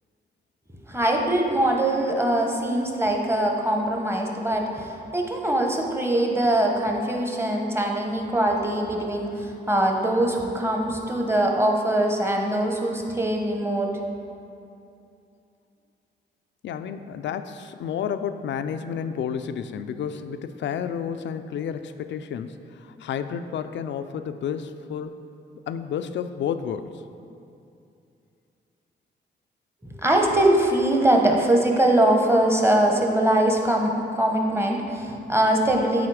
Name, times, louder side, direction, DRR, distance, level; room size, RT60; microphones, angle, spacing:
voice 1, 0.9-14.0 29.8-36.1, right 1 dB, 15° right, 1 dB, 1.1 m, -22 dB
voice 2, 16.6-25.1 25.7-27.0, left 8 dB, 75° left, 10 dB, 0.4 m, -31 dB
8.7 x 4.1 x 4.9 m, 2.6 s
cardioid pair, 70°, 19 cm